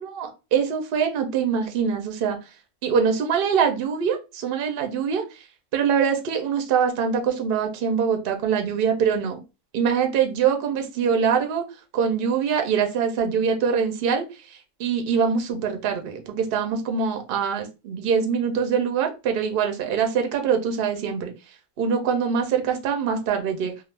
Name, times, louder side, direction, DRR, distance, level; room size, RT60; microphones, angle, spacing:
voice 1, 0.0-2.4 2.8-5.4 5.7-9.4 9.7-11.6 11.9-21.3 21.8-23.7, right 6 dB, 60° right, 5 dB, 0.6 m, -24 dB
2.3 x 2.0 x 3.2 m, 0.28 s
omnidirectional pair, 1.4 m